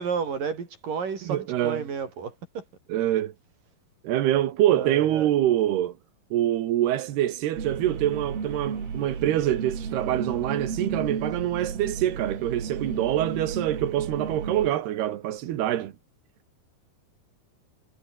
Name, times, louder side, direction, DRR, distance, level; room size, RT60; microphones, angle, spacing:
voice 1, 0.0-2.6 4.7-5.3, right 6 dB, 60° right, 6.2 m, -31 dB
voice 2, 1.3-1.8 2.9-3.3 4.0-5.9 6.3-15.9, right 12 dB, 90° right, 3.6 m, -25 dB
sound 1, 7.6-14.7, right 6 dB, 75° right, 6.7 m, -33 dB
omnidirectional pair, 4.5 m